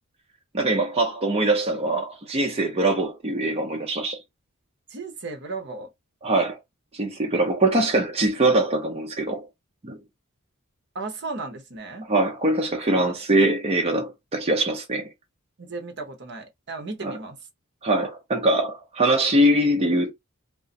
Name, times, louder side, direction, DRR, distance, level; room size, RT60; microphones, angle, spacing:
voice 1, 0.5-4.2 6.2-6.6 6.9-9.5 9.8-10.0 12.1-15.1 17.0-17.2 17.8-20.1, right 1 dB, 30° right, 0.6 m, -22 dB
voice 2, 4.9-5.9 10.9-12.1 15.6-17.4, right 3 dB, 55° right, 0.9 m, -35 dB
2.5 x 2.3 x 3.9 m
head